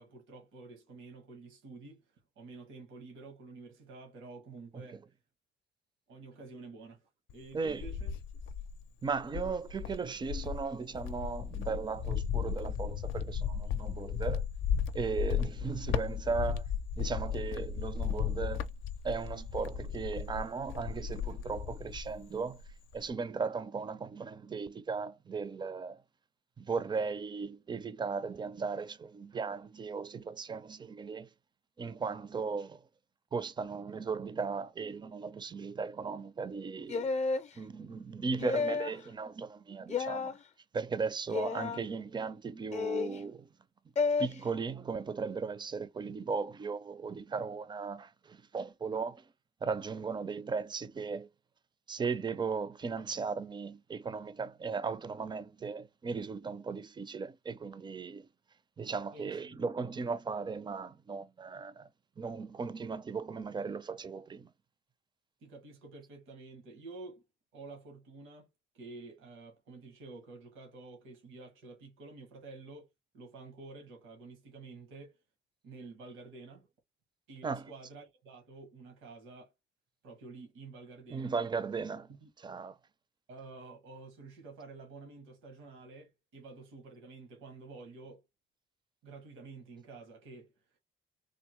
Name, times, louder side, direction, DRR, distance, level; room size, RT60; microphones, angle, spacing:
voice 1, 0.0-2.0 2.4-5.0 6.1-8.2 59.1-59.6 65.4-67.2 67.5-68.5 68.7-75.2 75.6-76.7 77.3-79.5 80.0-81.3 82.1-82.3 83.3-88.3 89.0-90.5, right 3 dB, 90° right, 1.3 m, -50 dB
Cricket, 7.3-8.8 9.3-22.3 22.6-23.1, left 7 dB, 80° left, 0.5 m, -35 dB
voice 2, 7.5-7.9 9.0-14.5 14.9-16.6 17.0-18.7 19.0-22.6 22.9-26.0 26.6-31.3 31.8-32.8 33.3-37.2 37.6-40.4 40.7-43.5 44.2-49.2 49.6-51.3 51.9-58.3 58.8-61.9 62.2-64.5 77.4-77.7 81.1-82.1 82.4-82.8, right 5 dB, 25° right, 0.4 m, -37 dB
sound 1, 36.9-37.5 38.4-39.0 39.9-40.3 41.3-41.8 42.7-43.2 44.0-44.3, left 4 dB, 35° left, 0.5 m, -31 dB
3.5 x 2.0 x 3.0 m
cardioid pair, 90°, 20 cm